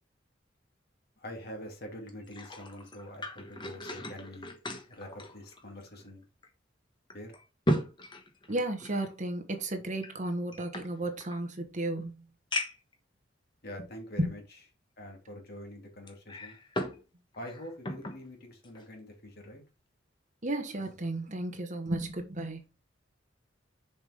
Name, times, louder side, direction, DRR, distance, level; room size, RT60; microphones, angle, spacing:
voice 1, 1.2-4.5 4.9-6.2 7.1-7.3 13.6-14.4 15.0-16.6 17.4-19.6, equal, 55° left, 2.7 m, -45 dB
sound 1, 2.1-6.1 6.4-6.5 7.1-9.1 10.0-11.4 12.0-12.1 12.5-12.9 13.7-13.8 16.1-17.0 17.3-18.2 18.6-18.8, left 1 dB, 25° left, 1.3 m, -36 dB
voice 2, 8.5-12.3 14.2-14.4 20.4-22.6, right 1 dB, 40° right, 1.3 m, -33 dB
7.0 x 5.5 x 3.6 m
head